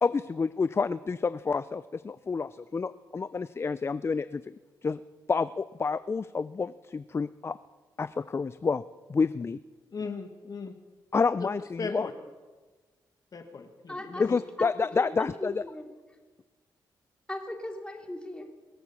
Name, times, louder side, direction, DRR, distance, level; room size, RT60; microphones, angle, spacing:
voice 1, 0.0-4.4 4.8-5.0 5.3-7.6 8.0-8.8 9.1-9.6 11.1-12.1 14.2-15.6, left 4 dB, 30° left, 15 dB, 0.4 m, -29 dB
voice 2, 9.9-10.7 11.4-11.5 11.8-12.1 13.3-14.4, left 4 dB, 50° left, 6 dB, 1.7 m, -37 dB
voice 3, 13.9-16.0 17.3-18.4, left 1 dB, 10° left, 2 dB, 2.9 m, -38 dB
22.0 x 7.9 x 7.0 m, 1.3 s
cardioid pair, 70°, 8 cm